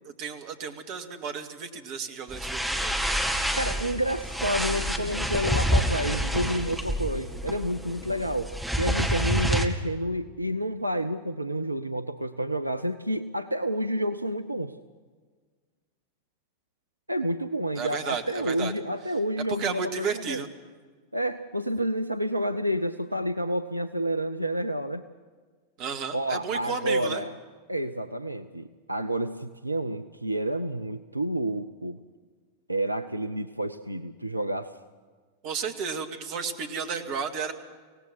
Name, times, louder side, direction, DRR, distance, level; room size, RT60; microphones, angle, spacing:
voice 1, 0.2-3.0 17.8-18.7 19.6-20.5 25.8-27.2 35.4-37.5, right 6 dB, 40° right, 7 dB, 2.0 m, -33 dB
sound 1, 2.3-9.7, equal, ahead, 2.0 m, -28 dB
voice 2, 3.4-14.8 17.1-20.4 21.1-25.1 26.1-27.3 27.7-32.0 32.7-34.7, equal, 85° right, 11 dB, 0.6 m, -29 dB
24.5 x 18.0 x 6.1 m, 1.5 s
figure-of-eight pair, 90°, 0 cm